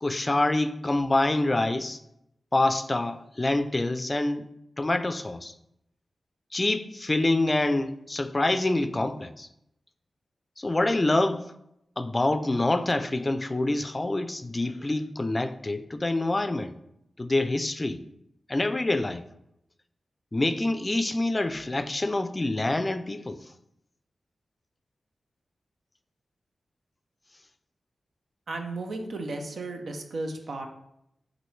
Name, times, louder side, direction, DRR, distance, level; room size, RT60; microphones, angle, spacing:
voice 1, 0.0-2.0 2.5-4.5 4.8-5.5 6.5-9.5 10.6-11.5 12.0-16.8 17.2-18.0 18.5-19.2 20.3-23.4, left 2 dB, 30° left, 0.4 m, -26 dB
voice 2, 28.5-30.7, right 2 dB, 75° right, 0.6 m, -34 dB
6.1 x 2.6 x 3.2 m
cardioid pair, 50°, 0 cm